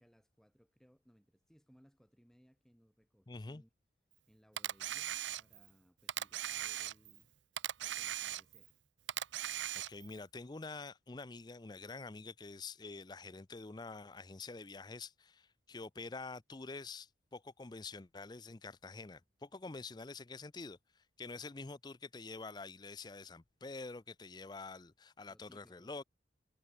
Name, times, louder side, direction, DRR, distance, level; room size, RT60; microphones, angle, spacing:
voice 1, 0.0-3.7 4.3-7.3 7.8-8.7 25.3-25.9, equal, 5° left, 3.6 m, -67 dB
voice 2, 3.3-3.6 9.9-26.0, left 3 dB, 20° left, 0.5 m, -47 dB
Camera, 4.6-5.7 6.1-7.2 7.6-8.7 9.1-10.1, right 12 dB, 75° right, 0.6 m, -39 dB
head